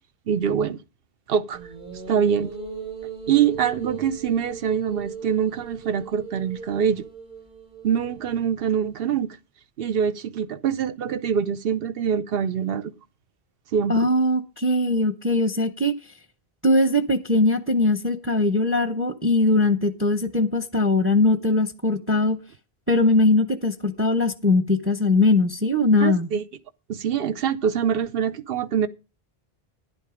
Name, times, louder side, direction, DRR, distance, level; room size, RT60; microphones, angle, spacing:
voice 1, 0.3-0.8 1.3-1.6 2.1-2.5 3.3-7.0 7.8-9.4 9.8-12.9 13.7-14.1 26.0-26.4 26.9-28.9, right 8 dB, 70° right, 0.9 m, -24 dB
sound 1, 1.5-8.9, right 6 dB, 50° right, 5.4 m, -39 dB
voice 2, 13.9-15.9 16.6-22.4 22.9-26.3, left 2 dB, 15° right, 0.7 m, -20 dB
11.0 x 8.9 x 5.0 m
omnidirectional pair, 1.0 m